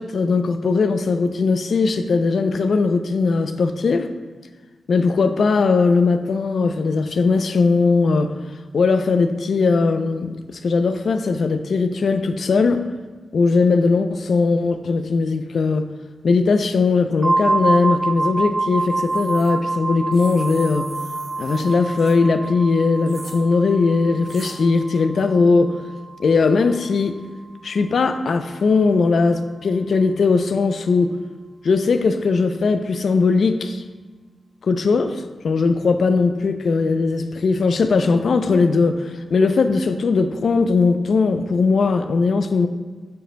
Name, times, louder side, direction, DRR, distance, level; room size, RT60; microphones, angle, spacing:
voice 1, 0.0-4.1 4.9-8.3 8.7-12.8 13.3-15.9 16.2-20.9 21.4-25.7 26.2-27.1 27.6-31.1 31.6-33.8 34.6-42.7, left 4 dB, 75° left, 9 dB, 0.5 m, -19 dB
sound 1, 17.2-26.9, right 3 dB, 15° right, 0.3 m, -26 dB
sound 2, 18.8-19.5 20.1-22.2 23.0-23.4 24.2-24.5, right 2 dB, 50° right, 1.7 m, -42 dB
9.1 x 7.7 x 2.2 m, 1.4 s
wide cardioid pair, 95°, 0 cm